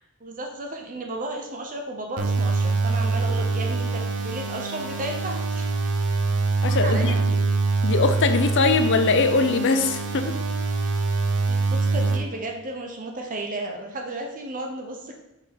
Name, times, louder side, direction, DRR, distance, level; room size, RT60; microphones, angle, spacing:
voice 1, 0.2-5.7 6.7-7.2 11.5-15.1, right 1 dB, 40° right, 3 dB, 0.8 m, -33 dB
sound 1, 2.2-12.2, right 3 dB, 85° right, 0.9 m, -24 dB
voice 2, 6.6-7.4 7.8-10.3, left 4 dB, 60° left, 8 dB, 0.6 m, -22 dB
5.3 x 4.4 x 5.3 m, 0.96 s
head